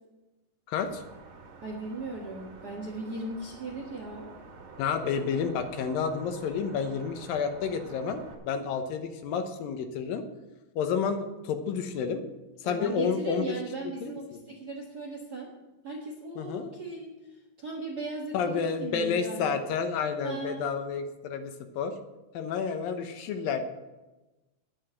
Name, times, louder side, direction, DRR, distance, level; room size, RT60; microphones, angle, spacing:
voice 1, 0.7-1.0 4.8-10.2 10.8-12.2 12.6-13.5 14.0-14.4 16.4-16.7 18.3-21.9 22.3-23.6, left 6 dB, 85° left, 7 dB, 2.7 m, -30 dB
sound 1, 0.8-8.3, right 4 dB, 75° right, 3.8 m, -49 dB
voice 2, 1.6-4.3 12.6-15.5 15.8-17.1 17.6-19.7 20.2-20.7, right 2 dB, 55° right, 0 dB, 1.1 m, -37 dB
10.0 x 7.9 x 7.9 m, 1.1 s
omnidirectional pair, 4.1 m